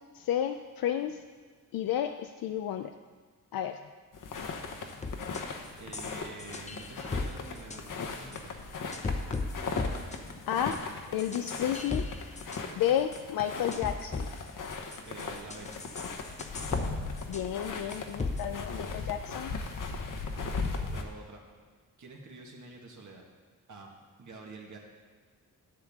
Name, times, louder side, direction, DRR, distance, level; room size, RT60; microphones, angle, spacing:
voice 1, 0.1-1.2 1.7-2.9 3.5-3.8 10.5-10.8 11.1-12.1 12.7-14.3 17.3-19.5, left 10 dB, 80° left, 6 dB, 0.5 m, -31 dB
sound 1, 4.1-21.0, left 4 dB, 65° left, 1.0 m, -38 dB
sound 2, 5.0-5.4 5.9-7.3 7.6-7.8 8.3-8.4 8.9-9.5 9.8-10.2 10.7-10.8 11.2-12.6 13.1-13.2 13.7-14.3 14.7-16.9 17.2-17.6 17.9-18.4, left 3 dB, 20° left, 0.6 m, -36 dB
voice 2, 5.8-8.6 15.0-15.7 20.2-21.4 22.0-23.2 23.7-24.8, right 4 dB, 55° right, 0 dB, 1.7 m, -48 dB
11.5 x 8.1 x 3.6 m, 1.5 s
cardioid pair, 95°, 35 cm